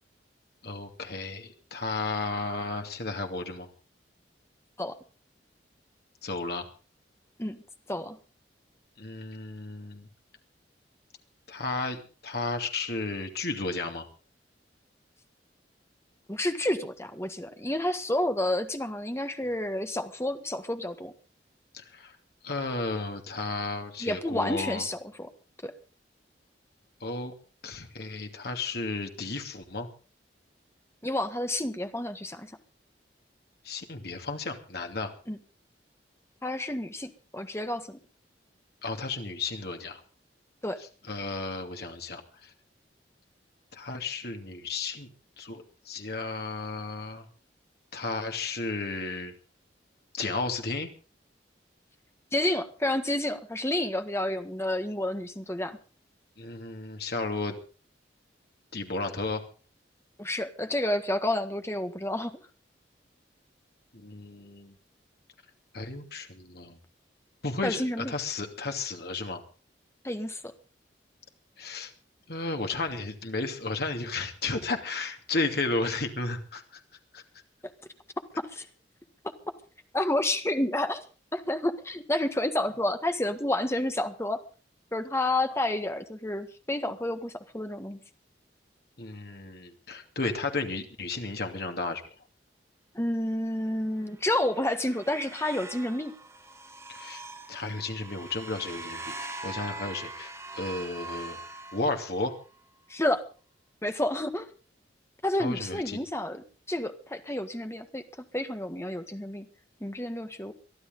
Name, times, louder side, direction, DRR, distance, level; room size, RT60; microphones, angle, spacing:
voice 1, 0.6-3.7 6.2-6.7 9.0-10.1 11.5-14.1 21.7-22.1 22.4-24.9 27.0-27.3 27.6-29.9 33.6-35.1 38.8-40.0 41.1-42.5 43.7-45.1 45.4-47.2 47.9-49.3 50.1-50.9 56.4-57.6 58.7-59.5 63.9-64.7 65.7-66.8 67.4-69.4 71.6-71.9 72.3-76.8 77.1-77.2 89.0-92.0 96.9-97.2 97.5-101.4 101.7-102.3 105.4-106.0, left 3 dB, 60° left, 4 dB, 2.7 m, -33 dB
voice 2, 16.3-21.1 24.0-25.3 25.6-25.7 31.0-32.5 35.3-35.4 36.4-38.0 40.6-40.8 52.3-55.8 60.2-62.4 67.6-68.1 70.0-70.4 78.4-78.6 79.9-81.0 81.3-84.4 84.9-88.0 92.9-96.1 102.9-103.2 103.8-104.5 105.2-108.0 108.3-109.5 109.8-110.5, left 1 dB, 15° left, 7 dB, 1.6 m, -30 dB
sound 1, 94.1-102.4, right 2 dB, 15° right, 3.2 m, -42 dB
23.0 x 13.0 x 3.9 m, 0.37 s
head